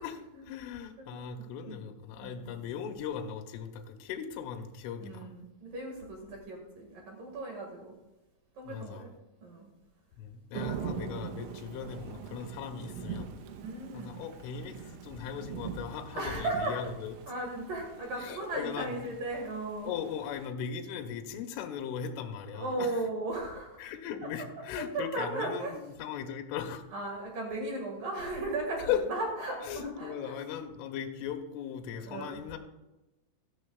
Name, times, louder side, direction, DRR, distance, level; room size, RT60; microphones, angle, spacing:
voice 1, 0.0-5.3 8.6-9.1 10.2-13.3 13.9-17.2 18.2-19.0 19.8-23.0 23.8-26.8 27.6-27.8 28.9-29.0 29.6-32.6, left 8 dB, 80° left, 5 dB, 3.3 m, -38 dB
voice 2, 1.0-1.8 2.2-2.5 5.0-7.9 8.5-9.1 9.4-9.7 13.6-14.2 16.1-16.9 17.3-19.9 22.5-23.8 24.9-25.7 26.9-30.4 31.9-32.4, right 2 dB, 55° right, 0 dB, 2.8 m, -36 dB
Thunder / Rain, 10.5-20.5, right 7 dB, 80° right, 3.3 m, -43 dB
15.0 x 13.0 x 2.4 m, 1.0 s
omnidirectional pair, 5.8 m